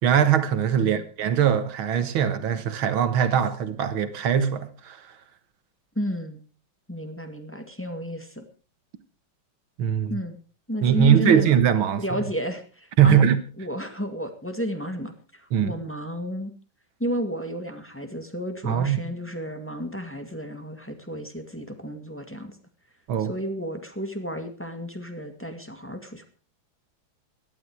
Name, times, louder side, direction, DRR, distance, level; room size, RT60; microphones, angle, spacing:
voice 1, 0.0-5.0 9.8-10.2 10.8-12.2 13.0-13.4 15.5-15.8 18.6-19.1 23.1-23.3, right 8 dB, 85° right, 2.2 m, -21 dB
voice 2, 6.0-6.4 6.9-8.4 10.1-10.4 10.7-11.5 12.0-13.2 13.6-16.5 17.0-22.6 23.2-26.3, equal, 5° left, 1.9 m, -32 dB
17.5 x 12.0 x 4.8 m
omnidirectional pair, 2.2 m